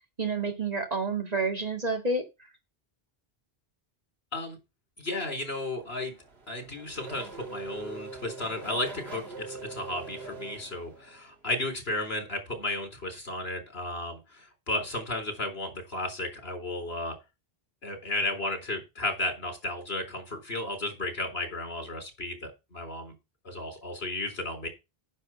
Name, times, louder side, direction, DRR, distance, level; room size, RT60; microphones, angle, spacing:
voice 1, 0.0-2.2, right 3 dB, 40° right, 4 dB, 2.1 m, -29 dB
voice 2, 5.0-6.1 6.5-17.1 17.8-23.1 23.4-24.7, left 2 dB, 80° left, 5 dB, 4.1 m, -34 dB
Race car auto racing / Accelerating revving vroom, 5.8-11.4, right 3 dB, 85° right, 1.9 m, -43 dB
9.7 x 6.6 x 5.8 m, 0.25 s
omnidirectional pair, 1.0 m